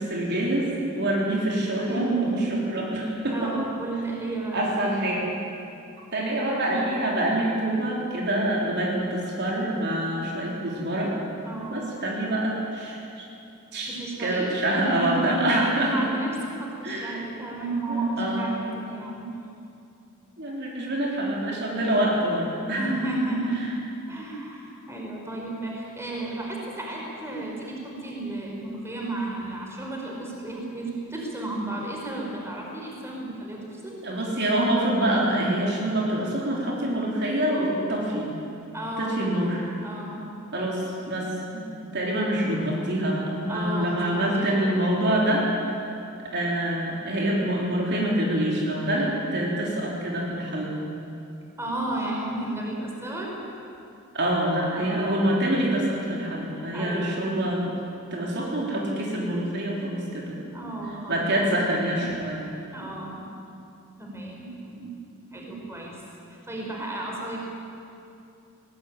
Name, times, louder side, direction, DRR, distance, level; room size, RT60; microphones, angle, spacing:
voice 1, 0.0-3.5 4.5-5.2 6.1-11.1 11.7-13.2 13.7-16.1 16.8-17.2 17.9-18.5 20.4-22.9 34.0-38.3 39.0-39.6 40.5-41.6 41.9-45.9 46.3-50.8 54.1-57.7 58.1-60.4 61.1-62.5, right 1 dB, 50° right, -3 dB, 3.9 m, -26 dB
voice 2, 1.9-2.6 3.3-4.7 11.4-11.9 13.9-19.2 22.8-23.7 24.1-34.0 38.7-39.2 39.8-40.3 43.5-44.9 51.6-53.3 54.7-55.3 56.7-57.3 60.5-62.0 62.7-63.2 64.0-64.9 65.3-65.9 66.3-67.4, right 2 dB, 10° right, -2 dB, 4.8 m, -32 dB
22.0 x 18.5 x 9.2 m, 2.6 s
head